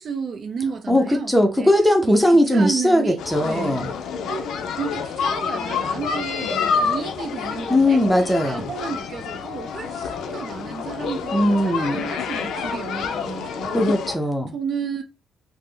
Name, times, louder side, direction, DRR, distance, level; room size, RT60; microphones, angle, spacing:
voice 1, 0.0-1.7 2.0-2.2 2.5-3.8 4.3-4.5 4.8-8.0 8.4-13.9 14.5-15.0, right 5 dB, 55° right, 0.5 m, -32 dB
voice 2, 0.9-3.9 7.7-8.7 11.3-12.0 13.7-14.5, left 1 dB, ahead, 0.6 m, -19 dB
sound 1, 3.2-14.2, left 6 dB, 80° left, 0.4 m, -28 dB
3.4 x 2.0 x 3.3 m
cardioid pair, 90°, 0 cm